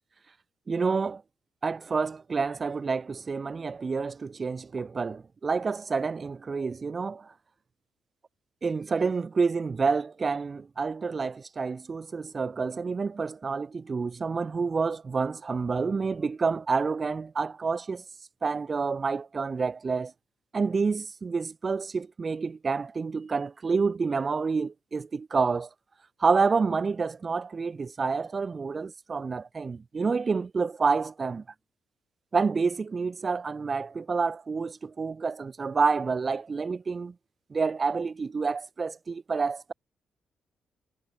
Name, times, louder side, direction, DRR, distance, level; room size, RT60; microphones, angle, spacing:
voice 1, 0.7-1.2 1.6-7.3 8.6-18.0 18.4-20.1 20.5-25.7 26.2-31.4 32.3-37.1 37.5-39.7, right 4 dB, 40° right, 1.0 m, -28 dB
hypercardioid pair, 40°, 0 cm